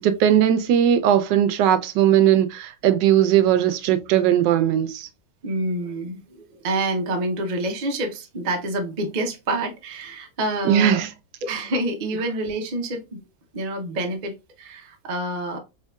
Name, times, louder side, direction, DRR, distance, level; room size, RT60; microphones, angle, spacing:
voice 1, 0.0-5.1 10.6-11.1, right 10 dB, 90° right, 1.2 m, -18 dB
voice 2, 5.4-11.0 11.4-13.2 13.5-15.6, right 1 dB, 70° right, 0.4 m, -27 dB
4.5 x 2.8 x 2.3 m
omnidirectional pair, 1.8 m